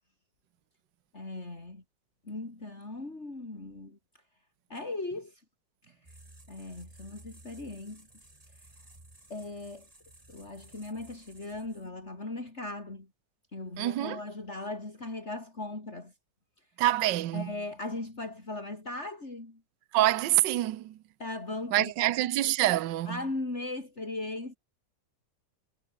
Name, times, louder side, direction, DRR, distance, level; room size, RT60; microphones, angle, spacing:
voice 1, 1.1-1.8 2.2-4.0 4.7-5.4 5.9-6.2 6.5-8.1 9.3-9.9 10.3-13.1 13.5-16.1 17.3-19.6 21.2-21.9 23.1-24.6, left 2 dB, 35° left, 4.7 m, -38 dB
sound 1, 6.0-12.1, right 1 dB, 20° right, 3.4 m, -55 dB
voice 2, 13.8-14.2 16.8-17.5 19.9-21.0 21.7-23.2, right 14 dB, 80° right, 1.5 m, -26 dB
omnidirectional pair, 2.0 m